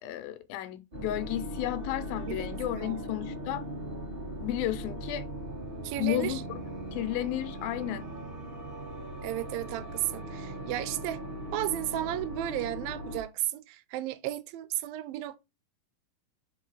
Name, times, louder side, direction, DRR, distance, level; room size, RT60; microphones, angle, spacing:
voice 1, 0.0-3.6 4.4-5.3 6.0-6.4 6.9-8.1, left 14 dB, 80° left, 2.4 m, -32 dB
sound 1, 0.9-13.2, equal, 65° right, 0.5 m, -39 dB
voice 2, 2.3-3.1 5.8-6.4 9.2-11.2 11.5-15.4, right 14 dB, 85° right, 2.3 m, -34 dB
5.9 x 4.7 x 4.7 m
omnidirectional pair, 4.2 m